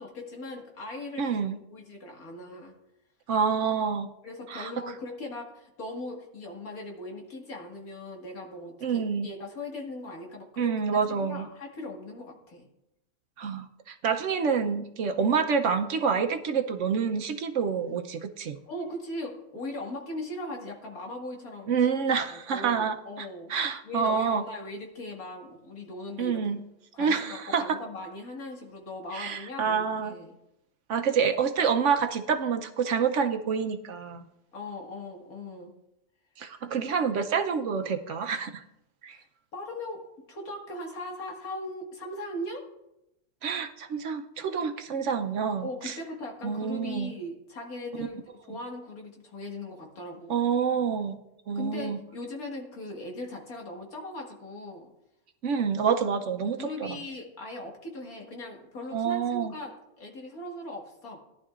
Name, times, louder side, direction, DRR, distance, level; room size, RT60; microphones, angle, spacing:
voice 1, 0.0-1.4 1.7-2.7 4.2-10.8 11.1-12.7 18.7-21.9 22.3-23.5 23.8-26.4 26.9-30.3 34.5-35.7 39.1-39.3 39.5-42.7 45.6-50.3 51.5-54.9 56.6-61.2, left 1 dB, 90° left, 0 dB, 2.3 m, -39 dB
voice 2, 1.2-1.6 3.3-4.1 4.5-4.7 8.8-9.3 10.6-11.5 13.4-18.6 21.7-24.4 26.2-26.6 27.0-27.8 29.1-30.1 30.9-34.2 36.4-38.6 39.0-39.2 43.4-46.0 46.4-47.1 48.0-48.1 50.3-51.2 51.5-52.0 55.4-57.0 58.9-59.5, right 6 dB, 65° right, 6 dB, 1.0 m, -27 dB
18.0 x 11.0 x 2.4 m, 0.87 s
omnidirectional pair, 1.5 m